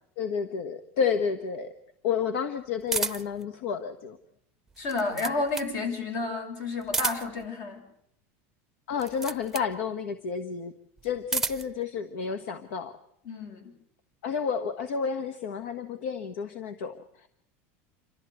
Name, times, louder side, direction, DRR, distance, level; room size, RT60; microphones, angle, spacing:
voice 1, 0.2-1.7 2.0-4.2 8.9-10.7 11.0-13.0 14.2-17.3, left 6 dB, 75° left, 11 dB, 1.4 m, -31 dB
sound 1, 2.9-3.4 4.7-5.8 6.8-7.5 8.9-9.7 11.0-11.7, right 4 dB, 5° right, 0.8 m, -31 dB
voice 2, 4.8-7.8 13.2-13.7, left 3 dB, 55° left, 7 dB, 6.2 m, -31 dB
27.5 x 13.5 x 8.1 m, 0.75 s
supercardioid pair, 150°, 7 cm